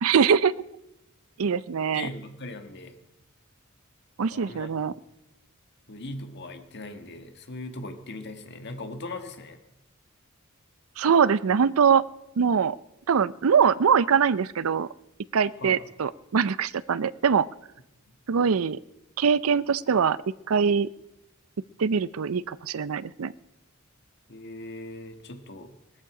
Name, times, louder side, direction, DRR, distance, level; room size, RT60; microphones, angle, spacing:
voice 1, 0.0-0.5 1.4-2.1 4.2-4.9 11.0-12.0 12.4-12.8 13.1-14.9 15.3-17.5 18.3-18.8 19.2-20.2 20.5-20.9 21.8-23.3, right 6 dB, 75° right, 18 dB, 0.5 m, -22 dB
voice 2, 1.9-3.0 4.3-4.8 5.9-9.6 15.6-15.8 18.1-18.2 24.3-25.7, left 2 dB, 55° left, 6 dB, 1.6 m, -39 dB
20.0 x 14.0 x 4.9 m, 0.91 s
head